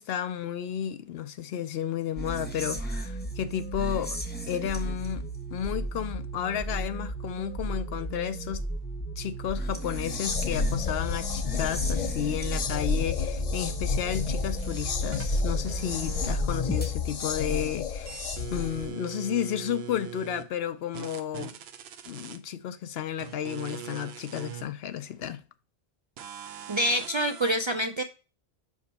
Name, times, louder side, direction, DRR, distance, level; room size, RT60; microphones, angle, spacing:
voice 1, 0.0-4.2 4.5-8.6 9.2-21.5 22.1-25.4, left 9 dB, 80° left, 0.8 m, -32 dB
sound 1, 2.2-16.9, right 1 dB, 10° left, 0.8 m, -34 dB
sound 2, 9.8-18.9, left 5 dB, 50° left, 0.6 m, -31 dB
sound 3, 13.7-16.8 17.1-20.4 20.9-22.4 23.2-24.7 25.2-25.3 26.2-27.5, right 9 dB, 80° right, 0.9 m, -42 dB
voice 2, 26.7-28.0, equal, 50° right, 0.3 m, -26 dB
5.3 x 5.0 x 4.0 m
omnidirectional pair, 1.0 m